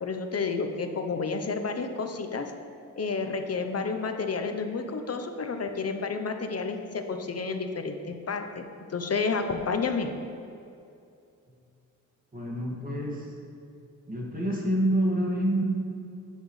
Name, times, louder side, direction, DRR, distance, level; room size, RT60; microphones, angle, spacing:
voice 1, 0.0-2.5 3.0-8.0 8.3-10.1, left 4 dB, 50° left, 6 dB, 0.8 m, -30 dB
voice 2, 12.3-13.3 14.1-15.6, right 1 dB, 25° right, -3 dB, 2.1 m, -27 dB
10.5 x 8.3 x 3.2 m, 2.5 s
wide cardioid pair, 90°, 32 cm